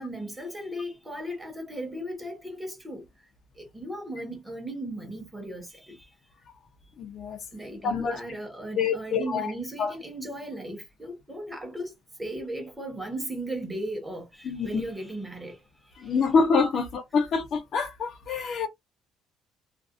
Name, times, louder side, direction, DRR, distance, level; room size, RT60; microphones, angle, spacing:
voice 1, 0.0-3.0 3.6-6.0 7.5-11.9 12.2-15.6, right 1 dB, 10° right, 1.0 m, -36 dB
voice 2, 7.0-7.4 7.8-8.2 8.8-9.5 9.8-9.9 14.4-14.8 16.0-18.7, left 5 dB, 50° left, 0.6 m, -26 dB
2.5 x 2.2 x 2.4 m
cardioid pair, 130°, 0 cm